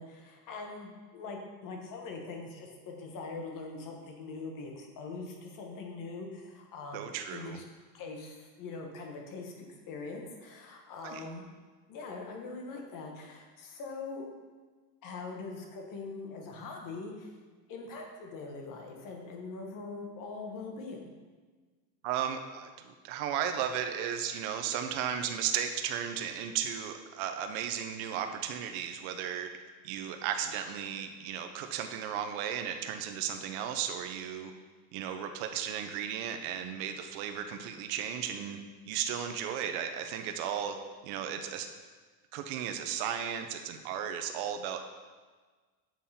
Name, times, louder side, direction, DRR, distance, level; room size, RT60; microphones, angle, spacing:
voice 1, 0.0-7.6 7.9-11.5 11.9-14.3 15.0-17.3 17.7-21.1, left 3 dB, 45° left, 2 dB, 1.2 m, -42 dB
voice 2, 6.9-7.6 11.0-11.2 22.0-29.5 29.8-34.5 34.9-38.6 38.9-40.8 41.0-41.7 42.3-44.8, right 9 dB, 65° right, 6 dB, 0.7 m, -35 dB
7.4 x 3.6 x 4.2 m, 1.4 s
supercardioid pair, 125°, 46 cm